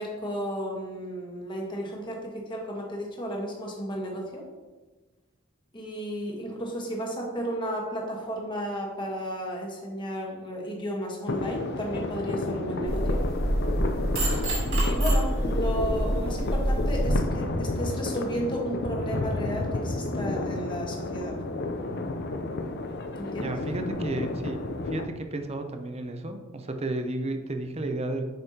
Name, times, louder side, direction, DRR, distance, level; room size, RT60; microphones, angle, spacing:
voice 1, 0.0-4.4 5.7-13.2 14.7-21.4 23.2-23.5, equal, 25° left, -1 dB, 1.3 m, -33 dB
sound 1, 11.3-25.1, left 2 dB, 50° left, 0.5 m, -31 dB
sound 2, 12.9-17.1, right 1 dB, 65° right, 2.1 m, -26 dB
voice 2, 23.4-24.6 24.8-28.2, right 2 dB, 30° right, 6 dB, 0.6 m, -32 dB
7.7 x 5.3 x 2.8 m, 1.2 s
head